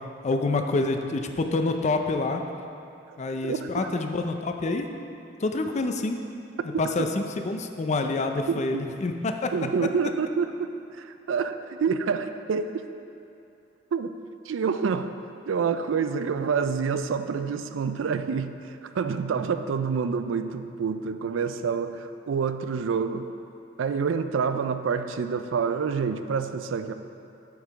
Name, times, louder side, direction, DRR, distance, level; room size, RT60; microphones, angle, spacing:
voice 1, 0.2-2.4 3.2-4.9 5.4-6.2 6.8-9.5, left 3 dB, 35° left, 6 dB, 0.4 m, -27 dB
voice 2, 3.4-3.9 6.7-6.9 8.5-8.8 9.5-10.7 11.0-12.8 13.9-14.1 14.5-15.1 15.5-18.5 18.9-23.3 23.8-26.9, right 5 dB, 85° right, 10 dB, 0.4 m, -27 dB
8.5 x 4.8 x 4.6 m, 2.7 s
head